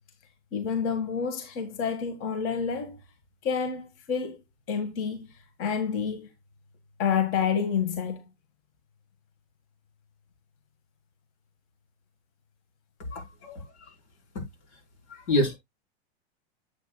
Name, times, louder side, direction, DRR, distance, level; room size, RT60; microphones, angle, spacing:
voice 1, 0.5-3.0 3.4-4.4 4.7-6.3 7.0-8.2, left 6 dB, 40° left, 1.8 m, -29 dB
voice 2, 13.1-13.6 15.1-15.6, left 1 dB, 85° left, 4.5 m, -27 dB
8.3 x 8.2 x 2.3 m
hypercardioid pair, 135°, 33 cm